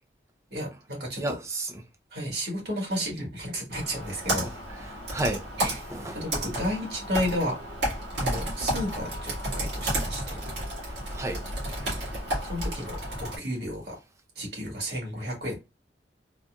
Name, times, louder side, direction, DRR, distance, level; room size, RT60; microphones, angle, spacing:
voice 1, 0.5-1.4 2.1-4.5 5.6-5.8 6.1-7.6 8.2-10.4 11.7-13.9 14.3-15.6, equal, 65° right, 1.8 m, -32 dB
voice 2, 1.2-1.8 5.1-6.2 11.1-11.4, right 1 dB, 15° right, 0.5 m, -32 dB
Computer keyboard, 3.7-13.4, right 1 dB, 80° right, 1.8 m, -32 dB
4.0 x 2.4 x 2.4 m
head